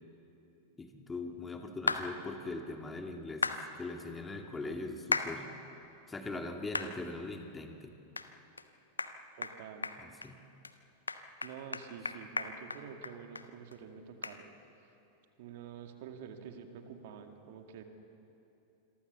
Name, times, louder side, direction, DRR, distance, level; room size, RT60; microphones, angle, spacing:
voice 1, 0.8-5.5 6.1-7.9 10.0-10.4, left 2 dB, 15° left, 4 dB, 2.0 m, -41 dB
sound 1, 1.9-2.1 3.4-3.6 5.1-5.3 5.8-5.9 6.7-6.9 7.4-7.5 8.2-8.3 8.6-8.7 9.0-9.1 9.4-9.6 9.8-10.3 10.6-10.7 11.1-13.5 13.7-13.8 14.2-14.4, left 4 dB, 80° left, 1.0 m, -34 dB
voice 2, 9.4-9.9 11.4-14.5 15.4-17.8, right 7 dB, 50° right, 5 dB, 2.2 m, -48 dB
27.0 x 23.0 x 7.2 m, 2.8 s
figure-of-eight pair, 90°, 0 cm